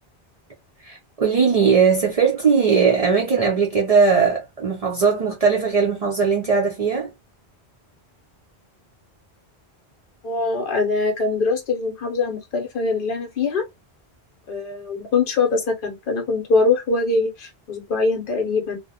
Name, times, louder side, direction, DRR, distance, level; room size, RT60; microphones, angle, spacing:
voice 1, 0.8-7.1, right 5 dB, 50° right, 0.4 m, -19 dB
voice 2, 10.2-13.6 14.5-18.8, left 3 dB, 60° left, 0.7 m, -23 dB
2.4 x 2.0 x 2.6 m
omnidirectional pair, 1.1 m